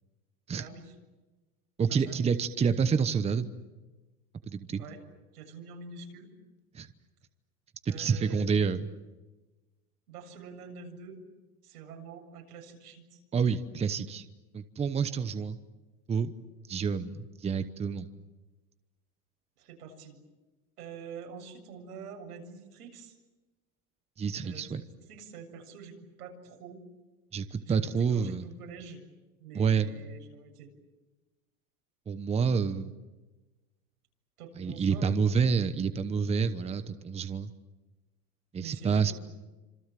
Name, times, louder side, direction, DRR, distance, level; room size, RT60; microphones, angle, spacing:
voice 1, 0.6-0.9 1.9-2.3 4.8-5.0 5.3-6.3 7.9-8.7 10.1-11.2 11.6-13.2 19.6-20.2 20.8-23.2 24.4-26.8 27.7-27.8 28.1-29.0 29.4-30.7 34.4-35.2 38.6-39.1, right 5 dB, 85° right, 3 dB, 7.4 m, -46 dB
voice 2, 1.8-3.5 4.4-4.8 6.7-6.9 7.8-8.8 13.3-14.2 14.5-15.6 16.1-16.3 16.7-18.1 24.2-24.8 27.3-28.4 29.5-29.9 32.1-32.9 34.6-37.5 38.5-39.1, right 6 dB, 15° right, 11 dB, 1.0 m, -28 dB
27.0 x 26.5 x 7.6 m, 1.2 s
supercardioid pair, 130°, 44 cm